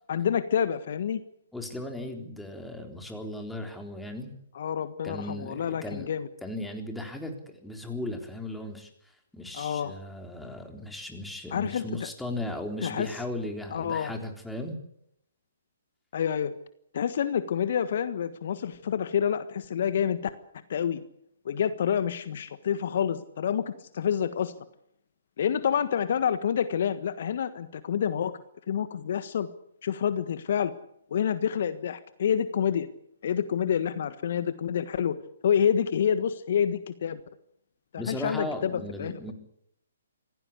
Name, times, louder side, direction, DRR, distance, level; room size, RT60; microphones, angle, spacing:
voice 1, 0.1-1.2 4.5-6.3 9.5-9.9 11.5-12.1 12.8-13.1 13.7-14.1 16.1-16.5 16.9-20.2 20.7-21.0 21.4-24.5 25.4-28.4 28.7-29.5 29.8-30.7 31.1-32.9 33.2-35.2 35.4-37.2 37.9-39.3, left 8 dB, 55° left, 12 dB, 1.5 m, -28 dB
voice 2, 1.5-4.3 5.0-6.1 6.4-8.9 9.3-14.8 38.0-39.3, left 1 dB, 5° left, 3 dB, 3.7 m, -36 dB
25.5 x 17.0 x 8.5 m, 0.75 s
figure-of-eight pair, 130°, 0 cm